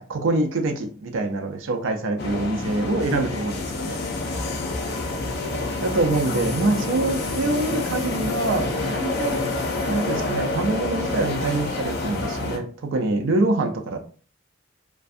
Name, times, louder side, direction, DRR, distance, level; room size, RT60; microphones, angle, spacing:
voice 1, 0.0-4.0 5.8-9.4 9.8-14.0, right 2 dB, 70° right, 5 dB, 0.4 m, -25 dB
sound 1, 2.2-12.6, left 2 dB, 50° left, 0.5 m, -28 dB
2.6 x 2.3 x 2.4 m, 0.41 s
head